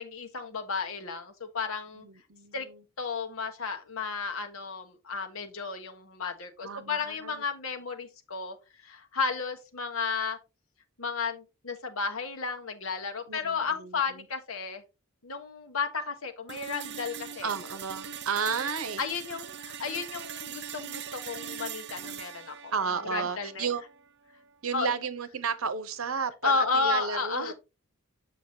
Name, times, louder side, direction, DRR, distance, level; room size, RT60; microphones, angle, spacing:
voice 1, 0.0-2.1 2.5-2.7 3.0-8.6 8.8-10.4 11.0-14.8 15.2-17.5 19.0-22.7 23.1-23.7 24.7-24.9 26.4-27.5, left 4 dB, 75° left, 1.2 m, -33 dB
voice 2, 2.0-2.8 6.6-7.4 13.3-14.3 17.4-19.0 22.7-23.8 24.6-27.5, right 5 dB, 75° right, 0.9 m, -33 dB
sound 1, 16.5-24.5, right 8 dB, 55° right, 0.7 m, -41 dB
7.7 x 6.0 x 2.7 m
head